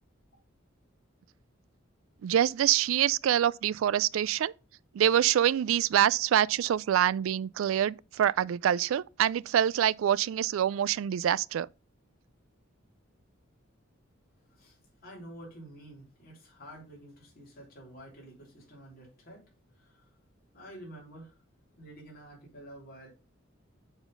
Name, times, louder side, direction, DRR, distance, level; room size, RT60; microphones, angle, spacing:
voice 1, 2.2-4.5 4.9-11.7, right 10 dB, 80° right, 0.3 m, -25 dB
voice 2, 14.5-19.4 19.7-20.1 20.5-21.3 21.8-23.1, right 1 dB, 50° left, 3.3 m, -49 dB
7.0 x 4.0 x 5.2 m
head